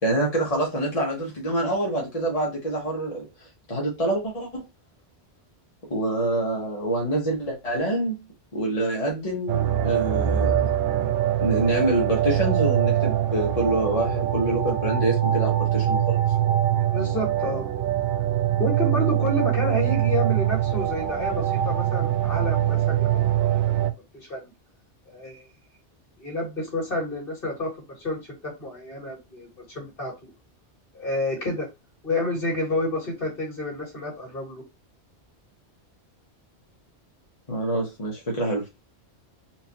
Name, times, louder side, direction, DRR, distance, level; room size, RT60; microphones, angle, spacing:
voice 1, 0.0-3.3 3.7-4.7 5.9-8.2 8.5-10.7 11.4-16.2 37.5-38.7, right 1 dB, 35° left, 1.1 m, -26 dB
sound 1, 9.5-23.9, right 11 dB, 70° right, 0.8 m, -23 dB
voice 2, 16.9-17.7 18.6-23.1 23.3-24.5 25.1-25.5 26.2-30.1 30.9-31.7 32.0-34.6, left 1 dB, 55° left, 2.1 m, -29 dB
4.4 x 2.5 x 2.8 m
omnidirectional pair, 1.1 m